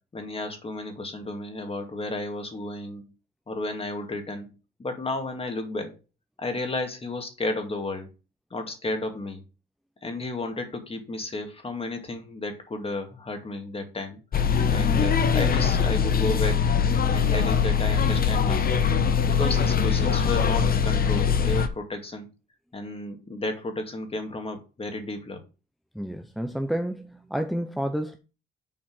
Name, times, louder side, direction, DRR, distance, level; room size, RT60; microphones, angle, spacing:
voice 1, 0.1-3.1 3.5-4.5 4.8-5.9 6.4-8.1 8.5-9.4 10.0-14.2 14.7-16.6 17.1-18.7 19.2-22.3 22.7-25.4, left 2 dB, 30° left, 2.4 m, -33 dB
sound 1, 14.3-21.7, left 6 dB, 50° left, 1.1 m, -22 dB
voice 2, 25.9-28.2, equal, ahead, 0.9 m, -30 dB
7.6 x 4.3 x 6.1 m
cardioid pair, 90°, 20 cm